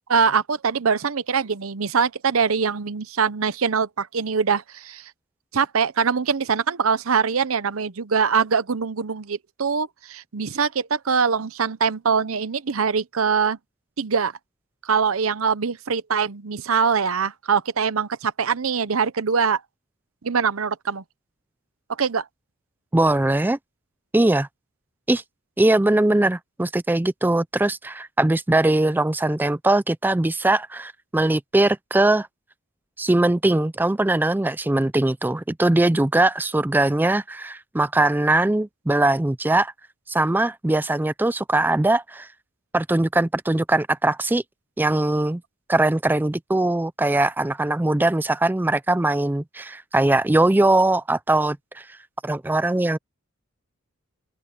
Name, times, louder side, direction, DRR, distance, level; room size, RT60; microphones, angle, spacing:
voice 1, 0.1-5.0 5.5-13.6 14.0-14.3 14.8-19.6 20.2-21.0 22.0-22.3, right 6 dB, 80° right, 0.8 m, -23 dB
voice 2, 22.9-23.6 24.1-24.5 25.1-25.2 25.6-32.3 33.0-39.7 40.1-42.3 42.7-44.4 44.8-45.4 45.7-51.8 52.2-53.0, right 2 dB, 10° right, 0.3 m, -21 dB
open air
head